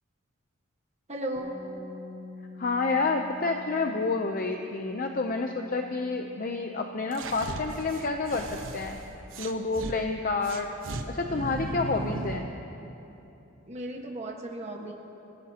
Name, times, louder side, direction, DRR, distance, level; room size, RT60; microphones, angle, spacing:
voice 1, 1.1-1.5 13.7-14.9, right 1 dB, 35° right, 0 dB, 1.5 m, -35 dB
sound 1, 1.3-11.1, left 3 dB, 50° right, 4.7 m, -48 dB
voice 2, 2.6-9.0 9.4-10.7 11.1-12.5, left 3 dB, 45° left, 4 dB, 0.7 m, -29 dB
sound 2, 7.1-10.0 10.4-12.5, right 2 dB, 70° right, 1.0 m, -37 dB
27.0 x 16.5 x 2.9 m, 3.0 s
head